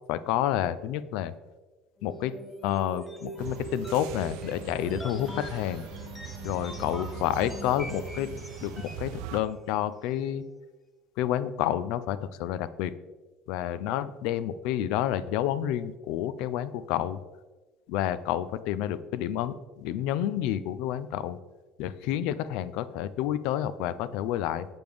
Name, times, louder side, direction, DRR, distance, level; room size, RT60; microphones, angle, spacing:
voice 1, 0.1-1.3 2.0-2.3 2.6-5.9 6.4-8.3 8.6-10.4 11.2-12.9 13.5-17.2 17.9-21.4 21.8-24.7, left 11 dB, 75° left, 14 dB, 0.4 m, -29 dB
sound 1, 2.0-9.1, equal, 10° left, 0.6 m, -41 dB
sound 2, 3.4-9.4, right 12 dB, 90° right, 0.4 m, -41 dB
7.8 x 6.8 x 3.5 m, 1.2 s
cardioid pair, 170°, 0 cm